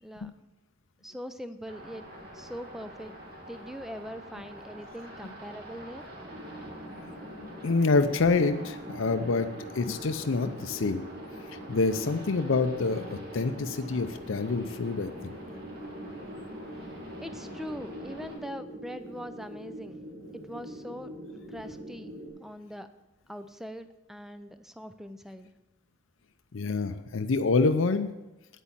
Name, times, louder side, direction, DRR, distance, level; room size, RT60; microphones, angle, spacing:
voice 1, 1.0-2.0 2.3-3.2 3.5-6.0 17.2-20.0 20.3-21.1 21.5-22.1 22.4-22.9 23.3-25.5, equal, ahead, 10 dB, 0.5 m, -42 dB
sound 1, 1.7-18.3, equal, 50° right, 2.4 m, -45 dB
sound 2, 6.2-22.3, equal, 75° right, 4.6 m, -44 dB
voice 2, 7.6-9.5 9.7-11.0 11.7-15.1 26.5-28.1, left 3 dB, 80° left, 9 dB, 0.6 m, -26 dB
9.2 x 8.4 x 7.4 m, 1.0 s
head